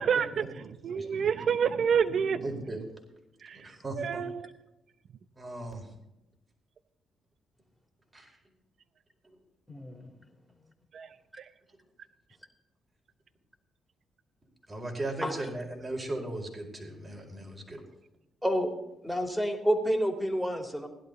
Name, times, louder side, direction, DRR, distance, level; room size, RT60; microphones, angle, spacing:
voice 1, 0.0-2.6 3.4-3.7 4.0-4.5 10.9-11.1 11.4-11.5, right 7 dB, 65° right, 14 dB, 0.7 m, -28 dB
voice 2, 2.4-2.8 3.6-4.2 5.4-5.9 8.1-8.3 9.2-9.4 14.7-17.8, right 1 dB, 35° right, 1 dB, 4.8 m, -37 dB
voice 3, 9.7-10.1 15.2-15.3 18.4-18.7 19.0-20.9, equal, 5° right, 4 dB, 3.1 m, -29 dB
16.5 x 11.5 x 4.1 m, 0.93 s
hypercardioid pair, 45°, 0 cm